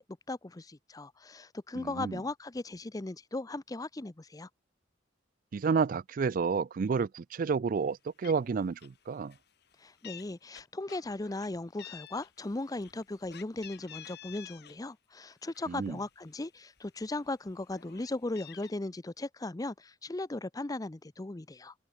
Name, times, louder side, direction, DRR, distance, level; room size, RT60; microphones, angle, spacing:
voice 1, 0.0-4.5 9.8-21.7, left 2 dB, 20° left, 0.5 m, -37 dB
voice 2, 1.8-2.2 5.5-9.3 15.7-16.0, right 5 dB, 45° right, 0.3 m, -30 dB
Meow, 7.9-8.0 8.2-8.5 8.8-9.0 9.3-10.2 10.5-11.5 11.8-14.8 15.2-16.3 16.8-16.9 17.2-18.7, left 10 dB, 60° left, 3.0 m, -50 dB
open air
head